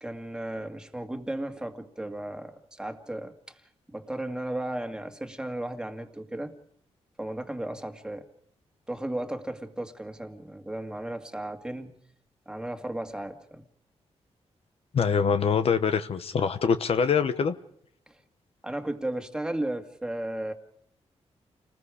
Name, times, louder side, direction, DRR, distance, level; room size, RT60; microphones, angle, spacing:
voice 1, 0.0-3.6 3.9-6.5 7.2-8.3 8.9-12.0 12.5-13.7 18.1-18.2 18.6-20.5, right 1 dB, 5° right, 5 dB, 2.1 m, -35 dB
voice 2, 14.9-17.5, left 6 dB, 60° left, 10 dB, 1.0 m, -24 dB
29.5 x 20.0 x 5.0 m, 0.65 s
cardioid pair, 110°, 11 cm